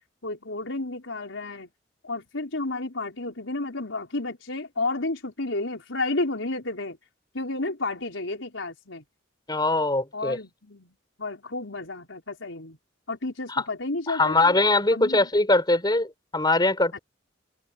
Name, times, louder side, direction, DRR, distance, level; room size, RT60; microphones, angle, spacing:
voice 1, 0.2-1.7 2.0-7.0 7.3-9.0 10.1-12.8 13.1-14.5 14.9-15.3 16.9-17.0, left 2 dB, 85° left, 4.7 m, -31 dB
voice 2, 9.5-10.4 14.1-17.0, left 2 dB, 20° left, 5.0 m, -22 dB
head